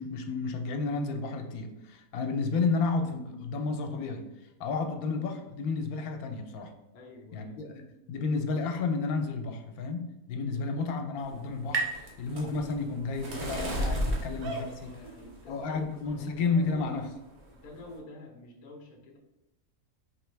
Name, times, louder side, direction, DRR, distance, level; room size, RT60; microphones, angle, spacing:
voice 1, 0.0-4.3 4.6-6.7 7.3-14.6 14.8-14.9 15.5-17.1, left 4 dB, 80° left, 5 dB, 1.1 m, -31 dB
voice 2, 6.9-7.8 13.9-17.0 17.5-19.2, left 2 dB, 45° left, 1 dB, 0.5 m, -49 dB
sound 1, 10.3-13.6, right 4 dB, 50° right, 0.5 m, -38 dB
sound 2, 11.2-15.6 16.0-16.5 16.8-17.1 17.3-18.0, equal, 70° right, 1.4 m, -35 dB
4.5 x 2.9 x 3.2 m, 0.97 s
omnidirectional pair, 1.6 m